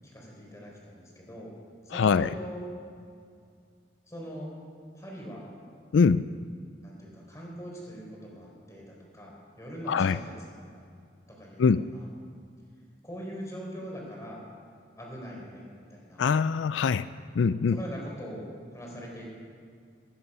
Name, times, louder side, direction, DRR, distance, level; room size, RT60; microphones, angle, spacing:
voice 1, 0.0-1.5 1.8-2.7 4.0-4.5 4.9-5.5 6.8-10.9 11.3-12.1 13.0-14.4 15.0-16.2 17.7-19.3, equal, 20° left, -2 dB, 3.9 m, -42 dB
voice 2, 1.9-2.3 5.9-6.2 9.9-10.2 11.6-11.8 16.2-17.1 17.3-17.8, left 5 dB, 90° left, 15 dB, 0.4 m, -23 dB
17.0 x 15.0 x 5.5 m, 2.2 s
head